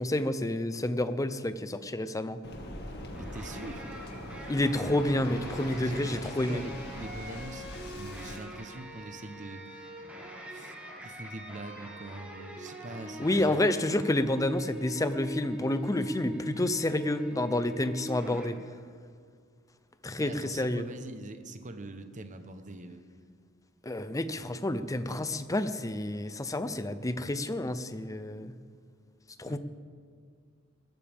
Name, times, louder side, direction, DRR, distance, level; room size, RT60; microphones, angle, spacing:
voice 1, 0.0-2.4 4.5-6.6 13.2-18.6 20.0-20.8 23.8-28.6 29.4-29.6, left 1 dB, 15° left, 11 dB, 0.6 m, -29 dB
Waves surf, 2.4-8.4, left 1 dB, 55° left, 1.9 m, -42 dB
sound 1, 3.1-18.5, equal, 5° right, 2.3 m, -42 dB
voice 2, 3.2-3.8 5.8-9.9 10.5-10.7 11.0-13.6 20.2-23.0 29.5-29.6, right 2 dB, 40° right, 8 dB, 1.0 m, -43 dB
22.0 x 13.5 x 3.6 m, 2.1 s
head